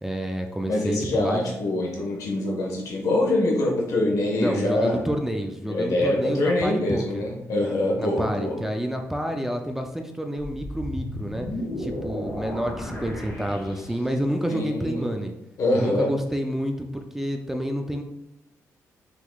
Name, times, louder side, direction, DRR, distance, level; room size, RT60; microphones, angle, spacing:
voice 1, 0.0-1.6 4.4-7.3 8.0-11.5 11.8-15.3 15.7-18.0, equal, 5° right, 4 dB, 0.3 m, -29 dB
voice 2, 0.7-5.0 5.6-8.6 14.5-15.1 15.6-16.1, left 1 dB, 75° left, 0 dB, 1.2 m, -24 dB
sound 1, 10.4-14.3, left 1 dB, 25° left, 1.2 m, -34 dB
5.8 x 3.8 x 2.3 m, 0.86 s
wide cardioid pair, 170°, 6 cm